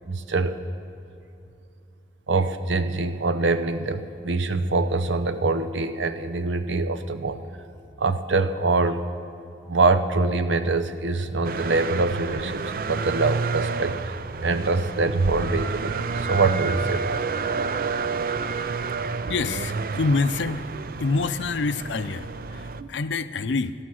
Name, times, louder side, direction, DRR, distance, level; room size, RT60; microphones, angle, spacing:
voice 1, 0.1-0.6 2.3-7.4 8.0-9.0 9.7-17.2 22.8-22.9, right 3 dB, 90° right, 10 dB, 0.7 m, -24 dB
sound 1, 11.4-22.8, right 4 dB, 50° right, 0.4 m, -29 dB
voice 2, 19.3-20.7 21.0-23.7, left 3 dB, 80° left, 13 dB, 0.5 m, -26 dB
17.5 x 12.5 x 6.3 m, 2.7 s
head